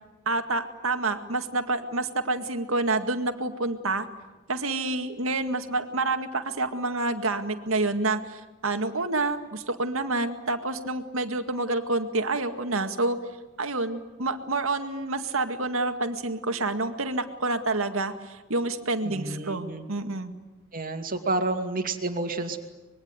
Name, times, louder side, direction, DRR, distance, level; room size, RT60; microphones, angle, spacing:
voice 1, 0.3-4.1 4.5-13.2 13.6-20.3, right 2 dB, 90° right, 7 dB, 2.1 m, -28 dB
voice 2, 19.0-19.9 20.7-22.6, right 2 dB, 45° right, 6 dB, 2.5 m, -30 dB
25.5 x 22.0 x 9.6 m, 1.1 s
head